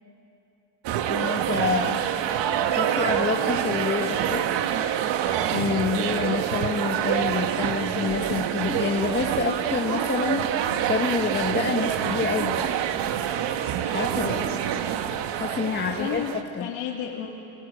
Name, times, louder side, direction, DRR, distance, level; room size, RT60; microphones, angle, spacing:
sound 1, 0.8-16.4, right 9 dB, 70° right, 1.4 m, -26 dB
voice 1, 1.1-2.0 2.7-4.5 5.5-12.8 13.9-14.4 15.3-16.2 16.5-16.7, left 5 dB, 25° left, 2 dB, 1.3 m, -28 dB
voice 2, 14.1-14.8 15.9-17.4, left 9 dB, 80° left, -3 dB, 2.5 m, -34 dB
22.0 x 22.0 x 9.2 m, 2.8 s
cardioid pair, 125°, 44 cm